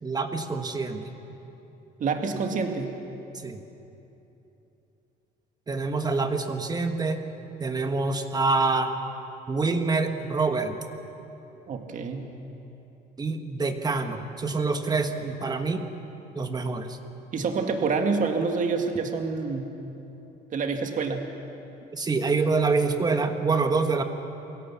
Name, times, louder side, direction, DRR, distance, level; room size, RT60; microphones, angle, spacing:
voice 1, 0.0-1.0 3.4-3.6 5.7-7.2 7.6-8.9 9.5-10.8 13.2-15.8 16.3-17.0 21.9-24.0, right 3 dB, 25° right, 6 dB, 1.5 m, -26 dB
voice 2, 2.0-3.0 11.7-12.3 17.3-19.7 20.5-21.3, right 4 dB, 50° right, 5 dB, 2.0 m, -27 dB
23.5 x 16.5 x 7.2 m, 3.0 s
cardioid pair, 110°, 17 cm